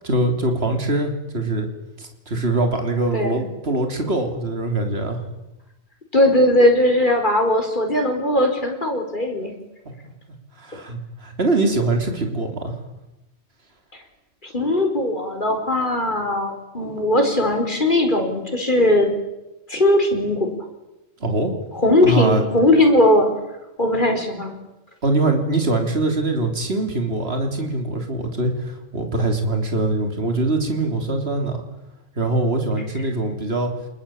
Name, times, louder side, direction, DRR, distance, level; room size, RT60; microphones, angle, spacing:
voice 1, 0.0-1.7 2.0-5.2 9.8-10.1 10.6-12.7 21.2-21.5 22.0-22.4 25.0-31.6 32.2-33.7, right 2 dB, 50° right, 4 dB, 3.5 m, -23 dB
voice 2, 6.1-9.5 14.5-19.1 19.7-20.5 21.8-23.3 23.8-24.5, left 1 dB, 40° left, 3 dB, 4.9 m, -19 dB
28.5 x 21.0 x 8.8 m, 0.97 s
omnidirectional pair, 1.3 m